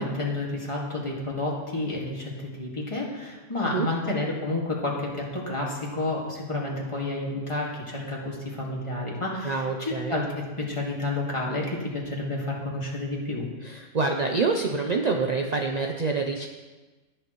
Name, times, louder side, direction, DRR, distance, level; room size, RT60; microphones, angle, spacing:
voice 1, 0.0-2.3 2.6-13.5, left 2 dB, 25° left, -3 dB, 2.0 m, -30 dB
voice 2, 9.4-10.1 13.6-16.5, right 4 dB, 45° right, 3 dB, 0.6 m, -26 dB
18.5 x 6.7 x 3.1 m, 1.2 s
omnidirectional pair, 1.3 m